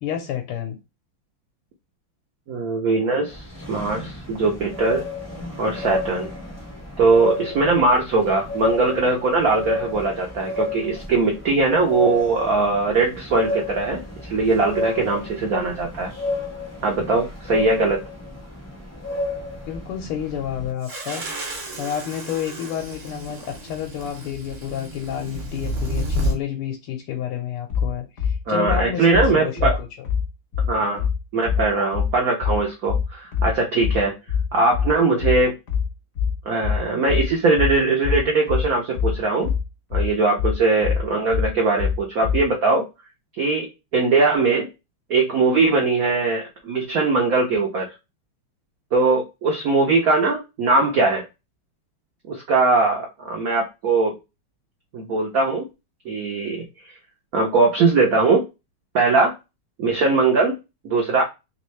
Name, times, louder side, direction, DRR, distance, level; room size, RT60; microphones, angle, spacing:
voice 1, 0.0-0.8 19.5-21.2 21.8-30.1, left 9 dB, 85° left, 2 dB, 1.7 m, -30 dB
voice 2, 2.5-5.1 5.6-6.3 7.0-16.1 16.8-18.0 28.5-29.8 30.7-31.1 31.3-34.1 34.5-35.5 36.4-39.5 39.9-42.8 43.4-43.7 43.9-44.7 45.1-47.9 48.9-51.2 52.3-54.2 54.9-55.6 56.0-56.6 57.3-58.4 58.9-59.3 59.8-60.5 60.8-61.2, right 3 dB, 65° right, 0 dB, 0.9 m, -20 dB
sound 1, 3.3-20.7, left 2 dB, 25° left, 0.3 m, -31 dB
sound 2, 20.8-26.4, equal, 35° right, 1.1 m, -30 dB
sound 3, 27.7-42.5, left 7 dB, 55° left, 0.8 m, -24 dB
3.7 x 3.2 x 3.1 m, 0.25 s
omnidirectional pair, 2.4 m